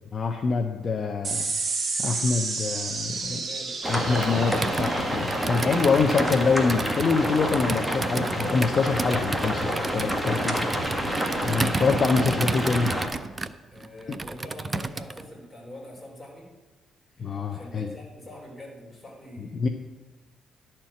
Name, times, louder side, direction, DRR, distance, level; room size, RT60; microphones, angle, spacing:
voice 1, 0.1-1.5 2.0-3.4 3.9-9.7 9.9-10.5 11.4-12.9 17.2-17.9 19.5-19.7, left 4 dB, 45° left, 5 dB, 0.7 m, -25 dB
sound 1, 1.2-8.0, right 4 dB, 45° right, 1.9 m, -33 dB
voice 2, 3.1-3.8 13.7-16.5 17.1-19.7, left 1 dB, 15° left, -3 dB, 3.8 m, -44 dB
sound 2, 3.8-13.1, equal, 5° right, 1.5 m, -28 dB
Computer keyboard, 4.5-15.2, right 3 dB, 25° right, 0.5 m, -33 dB
11.5 x 4.5 x 7.8 m, 1.2 s
cardioid pair, 90°, 0 cm